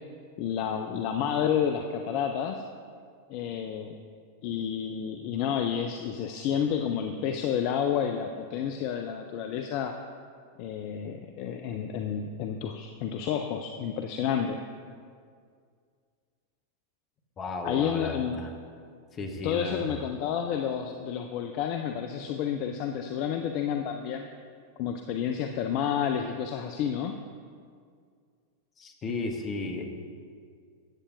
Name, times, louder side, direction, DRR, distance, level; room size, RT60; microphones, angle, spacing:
voice 1, 0.4-2.6 3.3-3.9 4.4-9.9 10.6-14.6 17.6-18.4 19.4-24.3 24.8-27.2, left 8 dB, 45° left, 5 dB, 0.5 m, -30 dB
voice 2, 17.4-18.5 19.1-20.0 28.8-29.8, left 2 dB, 25° left, 4 dB, 1.1 m, -34 dB
14.0 x 8.5 x 2.6 m, 2.1 s
figure-of-eight pair, 90°, 0 cm